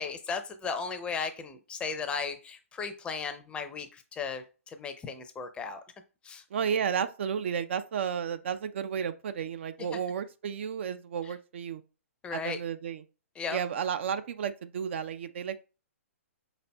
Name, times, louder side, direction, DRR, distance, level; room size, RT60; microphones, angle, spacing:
voice 1, 0.0-5.8 6.2-6.4 9.9-10.0 11.2-11.3 12.2-12.6 13.4-13.6, left 5 dB, 15° left, 0.5 m, -36 dB
voice 2, 6.5-11.8 12.3-13.0 13.5-15.6, right 7 dB, 55° right, 0.4 m, -32 dB
5.1 x 4.1 x 2.2 m
figure-of-eight pair, 125°, 8 cm